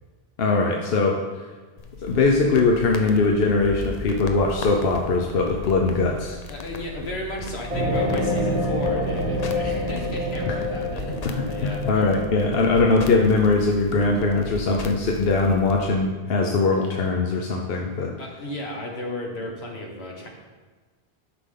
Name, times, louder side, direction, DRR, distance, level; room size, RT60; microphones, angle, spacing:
voice 1, 0.4-1.2 2.0-6.4 10.5-10.6 11.6-18.1, left 3 dB, 70° left, 0 dB, 1.0 m, -21 dB
sound 1, 1.8-15.8, left 4 dB, 45° left, 0.6 m, -37 dB
voice 2, 6.5-12.1 18.2-20.3, left 1 dB, 85° left, 0 dB, 1.6 m, -34 dB
sound 2, 7.7-13.1, left 1 dB, 35° right, 2.1 m, -27 dB
9.9 x 5.9 x 3.8 m, 1.3 s
omnidirectional pair, 1.0 m